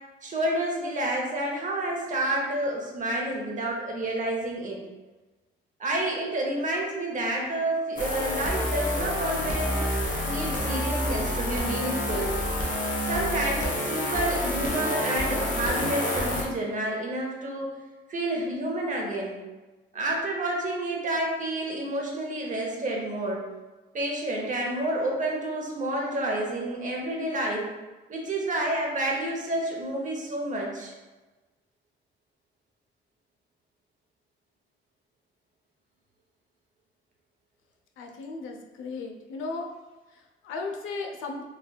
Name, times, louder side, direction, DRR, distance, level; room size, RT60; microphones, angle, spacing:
voice 1, 0.2-4.8 5.8-9.9 10.2-12.3 13.1-17.7 18.1-19.4 19.9-23.4 23.9-27.7 28.1-30.9, right 1 dB, 40° right, -1 dB, 0.7 m, -29 dB
sound 1, 8.0-16.4, left 1 dB, 40° left, 0.7 m, -28 dB
voice 2, 38.0-39.7 40.1-41.4, left 3 dB, 80° left, 3 dB, 0.4 m, -36 dB
3.3 x 2.3 x 2.2 m, 1.2 s
cardioid pair, 90°, 20 cm